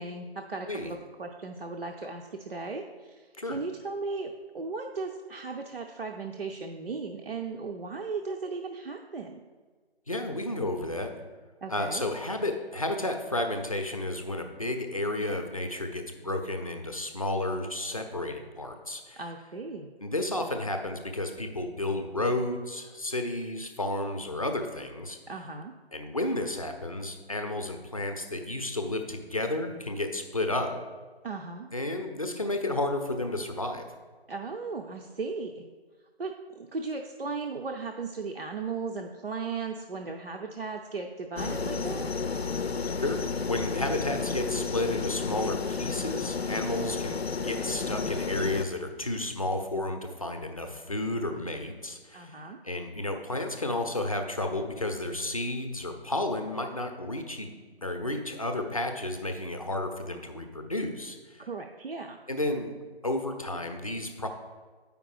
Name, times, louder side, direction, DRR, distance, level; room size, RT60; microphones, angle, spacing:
voice 1, 0.0-9.4 11.6-12.1 19.2-19.9 25.3-25.7 31.2-31.7 34.3-35.6 36.2-42.1 52.1-52.6 61.4-62.2, right 4 dB, 65° right, 2 dB, 0.6 m, -36 dB
voice 2, 10.1-11.1 11.7-19.2 20.0-25.2 25.9-30.7 31.7-33.8 43.0-52.3 52.6-57.5 57.8-61.4 62.3-62.7 63.0-64.3, left 1 dB, 35° left, 5 dB, 0.6 m, -32 dB
sound 1, 41.4-48.6, left 4 dB, 75° left, 0.6 m, -32 dB
8.1 x 5.1 x 4.8 m, 1.5 s
figure-of-eight pair, 165°, 32 cm